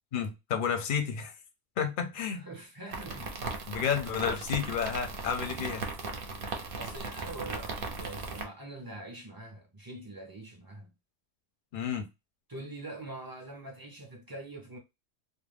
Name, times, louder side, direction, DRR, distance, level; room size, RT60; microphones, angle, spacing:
voice 1, 0.1-1.3 1.8-2.4 3.7-5.8 11.7-12.1, left 7 dB, 60° left, 0.6 m, -31 dB
voice 2, 2.3-3.3 6.8-10.9 12.5-14.8, right 2 dB, 30° right, 0.4 m, -44 dB
sound 1, 2.9-8.4, right 4 dB, 60° right, 0.7 m, -37 dB
2.3 x 2.1 x 3.2 m
omnidirectional pair, 1.1 m